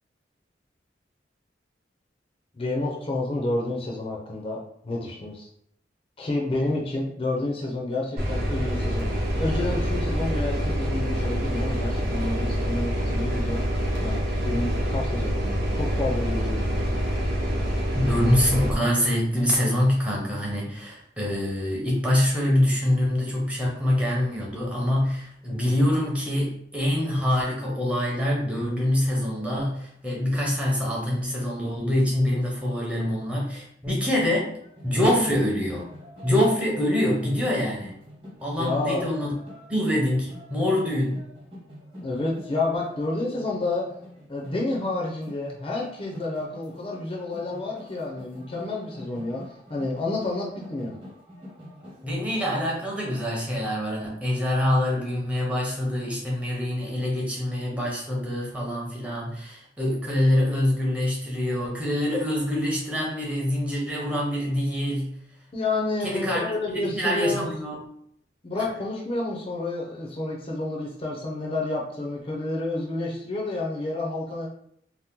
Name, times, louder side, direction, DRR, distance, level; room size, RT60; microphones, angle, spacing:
voice 1, 2.5-4.6 4.8-5.5 6.2-13.6 14.0-14.2 14.4-16.8 38.6-39.0 42.0-43.9 44.3-49.4 49.7-50.9 65.5-67.5 68.4-74.5, left 2 dB, 30° left, -2 dB, 0.5 m, -29 dB
sound 1, 8.2-18.7, equal, 55° right, 0.8 m, -26 dB
voice 2, 17.9-34.6 34.8-35.9 36.2-37.9 38.4-39.3 39.7-41.2 52.0-65.2 66.0-66.4 66.7-67.8 68.6-68.7, left 1 dB, 5° right, -4 dB, 0.7 m, -25 dB
sound 2, 34.6-53.3, equal, 30° right, 1.0 m, -46 dB
2.8 x 2.1 x 3.5 m, 0.70 s
head